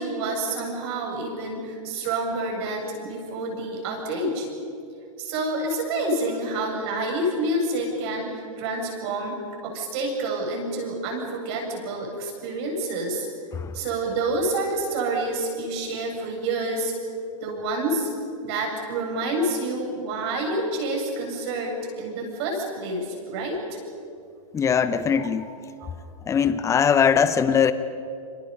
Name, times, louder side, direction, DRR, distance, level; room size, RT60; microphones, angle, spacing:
voice 1, 0.0-4.5 5.2-13.3 13.7-16.9 17.4-18.1 18.4-23.6 25.2-25.3 25.8-25.9, right 2 dB, 50° right, 1 dB, 7.6 m, -28 dB
voice 2, 24.5-25.5 26.3-27.7, left 7 dB, 15° left, 13 dB, 1.0 m, -21 dB
29.0 x 27.0 x 5.5 m, 2.5 s
hypercardioid pair, 110°, 18 cm